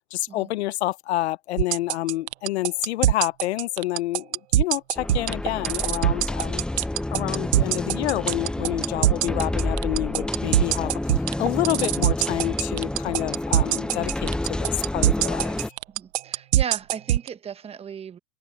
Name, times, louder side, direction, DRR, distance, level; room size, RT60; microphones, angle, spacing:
voice 1, 0.1-6.6 7.1-11.0 11.4-15.5, left 16 dB, 75° left, 1.0 m, -28 dB
sound 1, 1.6-17.3, right 13 dB, 85° right, 1.0 m, -21 dB
sound 2, 5.0-15.7, left 1 dB, 5° left, 0.8 m, -29 dB
voice 2, 15.9-18.2, right 7 dB, 20° right, 1.1 m, -36 dB
supercardioid pair, 135°, 33 cm